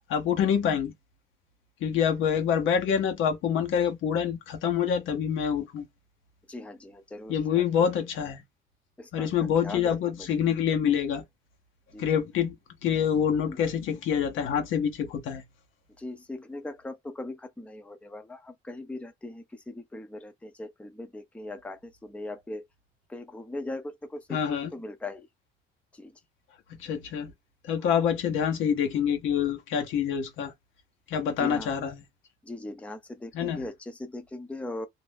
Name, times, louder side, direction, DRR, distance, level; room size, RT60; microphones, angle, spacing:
voice 1, 0.1-0.9 1.8-5.8 7.3-8.4 9.1-11.2 12.0-12.5 12.8-15.4 24.3-24.7 26.8-27.3 27.7-30.5 31.1-32.0 33.3-33.6, left 8 dB, 85° left, 0.8 m, -26 dB
voice 2, 6.5-7.9 9.0-9.3 9.6-10.3 11.9-12.2 13.5-13.6 16.0-22.6 23.1-24.4 24.7-25.3 26.0-26.1 27.8-28.1 31.4-31.7 32.5-34.9, left 2 dB, 5° left, 0.5 m, -39 dB
2.4 x 2.0 x 3.3 m
cardioid pair, 90°, 20 cm